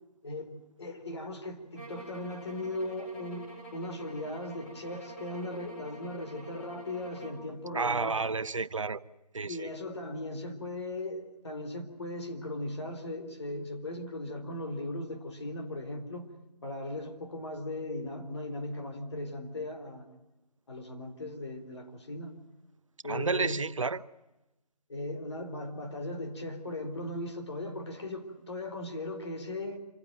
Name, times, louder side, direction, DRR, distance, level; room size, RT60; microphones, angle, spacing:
voice 1, 0.2-8.2 9.5-16.3 16.6-20.0 20.7-22.4 23.0-23.6 24.9-29.8, left 1 dB, 40° left, 4.1 m, -38 dB
sound 1, 1.7-7.5, right 2 dB, 15° left, 5.5 m, -48 dB
voice 2, 7.7-9.0 9.3-9.7 23.1-24.0, right 4 dB, 50° right, 0.9 m, -31 dB
27.0 x 15.5 x 9.3 m
figure-of-eight pair, 170°, 21 cm